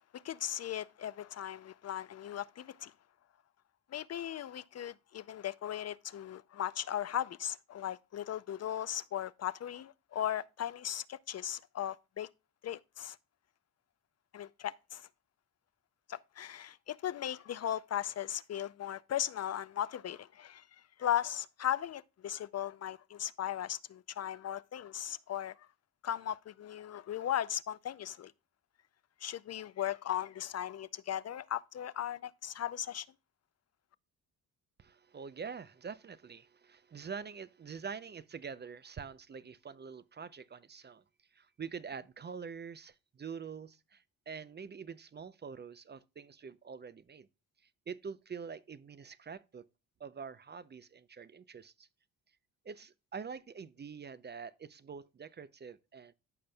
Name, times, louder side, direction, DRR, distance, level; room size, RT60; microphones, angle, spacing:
voice 1, 0.1-2.9 3.9-12.3 12.6-13.2 14.3-15.1 16.1-20.7 21.0-25.6 26.0-28.3 29.2-33.1, left 11 dB, 45° left, 0.4 m, -37 dB
voice 2, 34.8-41.0 41.3-47.3 47.6-49.7 50.0-51.9 52.6-56.1, right 6 dB, 30° right, 0.5 m, -45 dB
14.0 x 5.2 x 2.2 m
cardioid pair, 90°, 36 cm